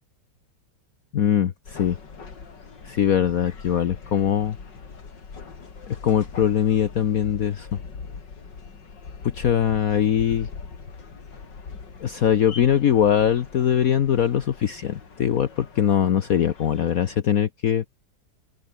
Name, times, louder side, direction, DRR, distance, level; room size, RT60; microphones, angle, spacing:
voice 1, 1.1-2.0 2.8-4.6 5.9-7.7 9.3-10.5 12.0-17.8, left 9 dB, 55° left, 1.3 m, -22 dB
sound 1, 1.6-17.2, left 5 dB, 75° left, 3.4 m, -41 dB
open air
omnidirectional pair, 2.0 m